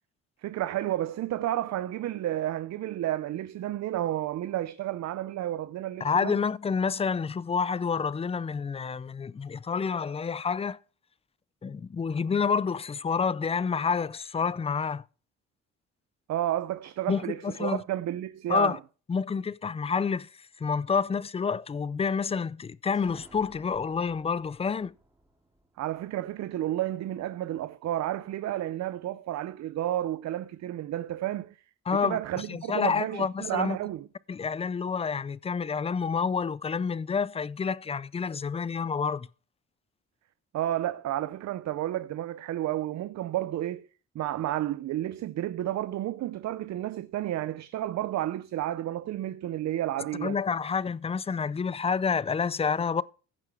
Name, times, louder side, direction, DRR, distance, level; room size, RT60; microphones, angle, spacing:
voice 1, 0.4-6.4 16.3-18.8 25.8-31.6 31.9-34.1 40.5-43.9 44.1-50.4, right 13 dB, 65° right, 0.6 m, -31 dB
voice 2, 6.0-10.8 11.6-15.0 17.1-17.8 18.5-18.8 19.1-20.3 20.6-25.0 31.9-33.8 34.3-39.3 50.1-53.0, left 5 dB, 20° left, 0.4 m, -28 dB
sound 1, 22.9-26.6, right 1 dB, 10° right, 3.2 m, -57 dB
15.0 x 5.8 x 4.7 m
cardioid pair, 90°, 30 cm